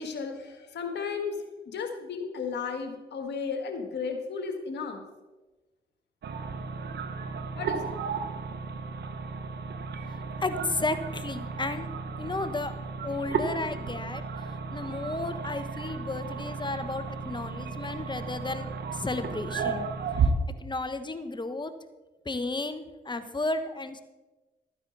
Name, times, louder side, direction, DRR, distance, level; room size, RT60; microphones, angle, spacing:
voice 1, 0.0-5.0 7.5-7.9, left 5 dB, 75° left, 4 dB, 1.7 m, -34 dB
sound 1, 6.2-20.3, right 5 dB, 70° right, 1.0 m, -34 dB
voice 2, 10.4-11.9 12.2-12.7 13.0-19.9 20.2-20.3 20.6-21.7 22.2-24.0, left 2 dB, 25° left, 10 dB, 1.1 m, -33 dB
13.0 x 9.5 x 4.0 m, 1.2 s
supercardioid pair, 55°, 18 cm